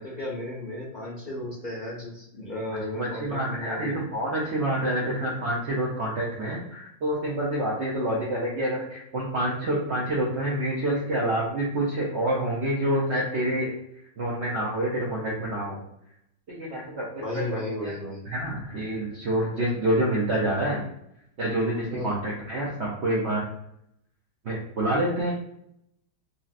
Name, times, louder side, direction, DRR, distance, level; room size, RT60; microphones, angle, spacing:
voice 1, 0.0-4.0 17.2-18.3 21.9-22.1, left 1 dB, 80° left, -6 dB, 0.4 m, -34 dB
voice 2, 2.7-13.7 14.2-15.8 16.5-17.5 17.8-17.9 18.2-20.8 21.4-23.5 24.4-25.3, right 1 dB, 75° right, -4 dB, 0.6 m, -27 dB
3.0 x 2.8 x 2.4 m, 0.76 s
omnidirectional pair, 1.9 m